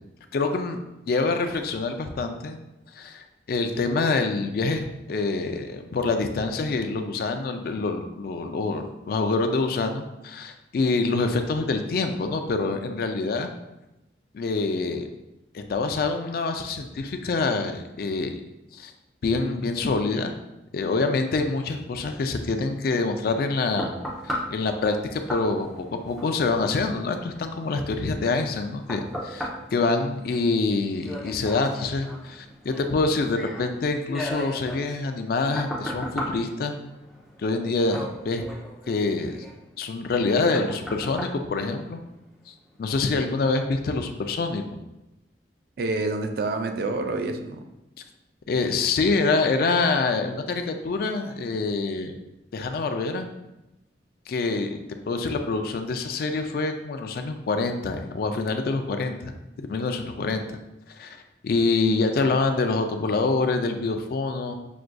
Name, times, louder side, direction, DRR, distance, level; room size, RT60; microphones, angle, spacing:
voice 1, 0.3-0.8 1.1-2.6 3.0-13.5 14.3-15.1 15.5-18.4 18.7-18.9 19.2-20.3 20.7-23.9 24.2-36.8 37.4-38.5 38.9-39.4 39.8-42.0 42.8-44.8 48.5-52.1 52.5-53.3 54.3-54.8 55.1-59.3 59.6-60.6 60.9-61.2 61.4-64.5, left 3 dB, 55° left, 6 dB, 0.3 m, -26 dB
sound 1, 23.1-42.4 42.9-43.0, equal, ahead, 0.6 m, -38 dB
voice 2, 45.8-47.7 60.4-60.5, right 2 dB, 60° right, 6 dB, 0.4 m, -28 dB
5.9 x 2.5 x 2.2 m, 0.95 s
head